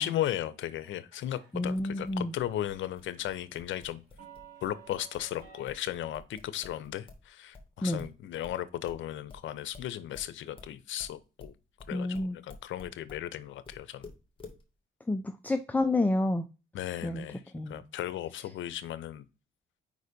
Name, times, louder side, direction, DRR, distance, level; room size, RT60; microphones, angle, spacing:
voice 1, 0.0-4.0 4.6-11.5 11.9-14.1 16.7-17.4 17.7-19.3, left 12 dB, 75° left, 0.7 m, -36 dB
sound 1, 0.8-1.8 2.1-2.4 2.7-5.7, right 8 dB, 55° right, 2.7 m, -53 dB
voice 2, 1.5-2.3 7.8-8.0 11.9-12.4 15.1-16.5 17.0-17.2 17.5-17.8, left 2 dB, 10° left, 0.5 m, -29 dB
sound 2, 1.7-7.3 7.5-13.3 13.6-14.6, left 3 dB, 25° left, 1.8 m, -51 dB
5.1 x 4.0 x 5.1 m
cardioid pair, 90°, 20 cm